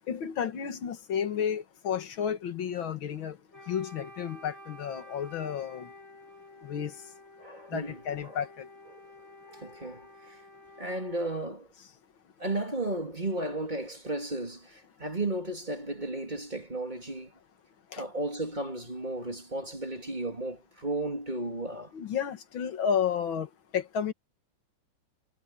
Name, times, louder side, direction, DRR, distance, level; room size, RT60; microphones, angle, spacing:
voice 1, 0.1-3.4 3.7-5.9 6.6-7.0 7.7-8.7 17.9-18.1 21.9-24.1, left 8 dB, 85° left, 2.3 m, -32 dB
Wind instrument woodwind instrument, 3.5-11.5, left 1 dB, 10° left, 2.8 m, -51 dB
voice 2, 7.4-8.4 8.9-9.0 9.5-10.4 10.8-11.7 12.4-17.3 18.0-21.9, right 2 dB, 20° right, 3.2 m, -34 dB
omnidirectional pair, 2.1 m